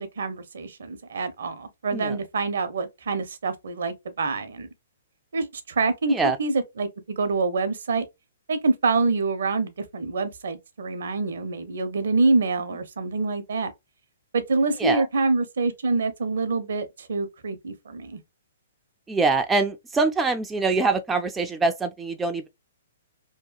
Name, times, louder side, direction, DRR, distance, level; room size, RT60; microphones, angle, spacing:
voice 1, 0.0-4.7 5.3-8.0 8.5-13.7 14.3-18.2, right 3 dB, 65° right, 0.6 m, -26 dB
voice 2, 19.1-22.5, right 3 dB, 10° right, 0.3 m, -24 dB
2.8 x 2.2 x 2.2 m
figure-of-eight pair, 120°, 0 cm